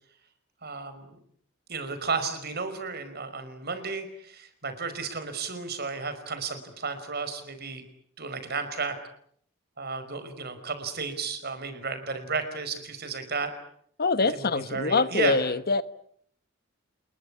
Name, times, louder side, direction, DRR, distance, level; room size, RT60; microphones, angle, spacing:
voice 1, 0.6-1.1 1.7-7.8 8.2-9.0 9.8-13.5 14.3-15.4, right 4 dB, 50° right, 5.3 m, -33 dB
voice 2, 14.0-15.8, left 3 dB, 50° left, 1.2 m, -24 dB
28.0 x 22.0 x 8.6 m
head